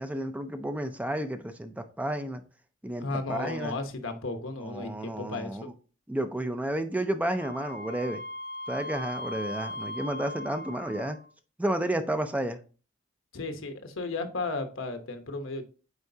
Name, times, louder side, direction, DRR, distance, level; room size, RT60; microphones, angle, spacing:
voice 1, 0.0-2.4 2.8-3.8 4.6-5.7 6.1-8.2 8.7-11.2 11.6-12.6, right 1 dB, 10° right, 0.5 m, -31 dB
voice 2, 3.0-5.7 13.3-15.6, left 3 dB, 75° left, 1.0 m, -34 dB
Wind instrument woodwind instrument, 7.4-11.3, left 1 dB, 50° left, 0.5 m, -39 dB
8.1 x 4.5 x 2.8 m
head